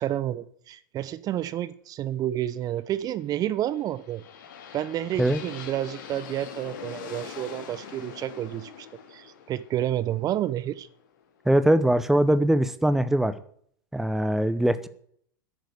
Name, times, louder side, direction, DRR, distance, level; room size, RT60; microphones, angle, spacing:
voice 1, 0.0-4.2 4.7-10.9, right 12 dB, 35° right, 17 dB, 0.8 m, -30 dB
sound 1, 3.5-11.5, left 7 dB, 60° left, 2.7 m, -43 dB
voice 2, 11.5-13.4 13.9-14.9, right 1 dB, 5° right, 13 dB, 0.8 m, -22 dB
10.5 x 9.1 x 8.1 m, 0.62 s
figure-of-eight pair, 95°, 11 cm